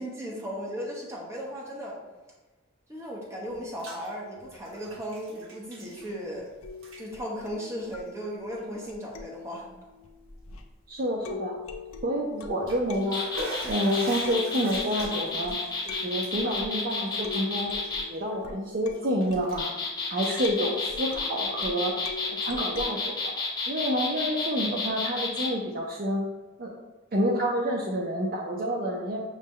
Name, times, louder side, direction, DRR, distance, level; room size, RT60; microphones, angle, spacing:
voice 1, 0.0-2.0 2.9-6.5 7.0-9.7, equal, 15° right, -4 dB, 0.9 m, -36 dB
Bathtub (filling or washing), 3.5-4.1 4.4-6.5 6.7-7.0 7.8-7.9 8.6-8.7 9.1-9.2 12.4-18.5 18.9-19.7 20.0-21.3, right 1 dB, 70° right, 1.0 m, -43 dB
sound 1, 6.6-10.8 11.3-22.9, left 5 dB, 85° left, 0.5 m, -43 dB
voice 2, 10.9-11.6 12.0-13.2 13.6-15.5 15.8-17.7 18.1-19.7 20.1-22.0 22.3-23.3 23.7-26.3 26.6-26.7 27.1-29.2, equal, 45° right, -1 dB, 0.5 m, -28 dB
sound 2, 13.0-18.0 19.3-25.5, left 3 dB, 20° left, 0.7 m, -31 dB
6.2 x 2.2 x 3.6 m, 1.2 s
head